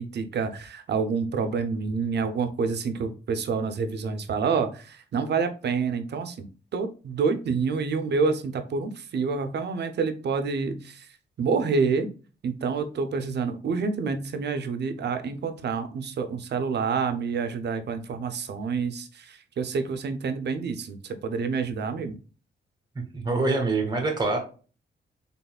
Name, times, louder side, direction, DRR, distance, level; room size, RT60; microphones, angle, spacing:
voice 1, 0.0-11.1 11.4-12.1 12.4-22.2, right 5 dB, 60° right, 8 dB, 0.6 m, -28 dB
voice 2, 22.9-24.4, right 3 dB, 20° right, 3 dB, 1.1 m, -25 dB
4.0 x 3.5 x 2.3 m, 0.37 s
cardioid pair, 85°, 20 cm